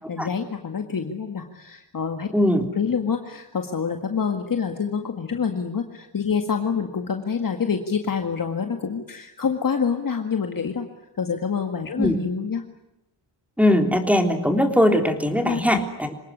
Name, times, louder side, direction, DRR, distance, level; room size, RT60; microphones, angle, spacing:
voice 1, 0.1-2.3 2.8-10.9 11.1-12.6 15.4-15.8, left 6 dB, 50° left, 5 dB, 2.0 m, -26 dB
voice 2, 2.3-2.7 12.0-12.2 13.6-16.1, left 1 dB, 5° right, 5 dB, 3.7 m, -20 dB
27.0 x 19.0 x 9.8 m, 0.91 s
wide cardioid pair, 100°, 43 cm